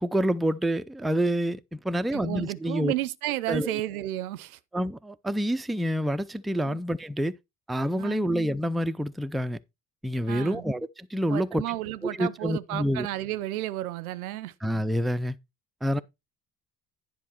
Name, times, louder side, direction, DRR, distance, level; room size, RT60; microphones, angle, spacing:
voice 1, 0.0-2.9 3.5-3.8 4.7-7.3 7.7-9.6 10.0-11.6 12.2-13.1 14.6-15.4 15.8-16.0, equal, ahead, 0.4 m, -27 dB
voice 2, 2.1-4.6 6.6-6.8 8.0-8.3 10.3-10.6 11.3-14.5, right 15 dB, 85° right, 0.6 m, -32 dB
10.0 x 5.0 x 4.4 m
hypercardioid pair, 55°, 42 cm